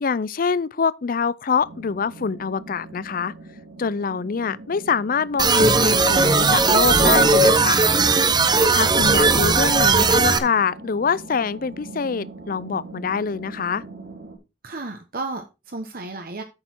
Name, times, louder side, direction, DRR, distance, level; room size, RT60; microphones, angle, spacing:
voice 1, 0.0-3.3 3.8-7.8 8.7-13.8, left 5 dB, 50° left, 0.5 m, -25 dB
sound 1, 1.6-14.4, right 2 dB, 75° right, 3.4 m, -41 dB
sound 2, 5.4-10.4, right 3 dB, 25° right, 0.8 m, -17 dB
voice 2, 14.6-16.4, right 3 dB, 55° right, 1.2 m, -33 dB
8.8 x 6.5 x 4.5 m
head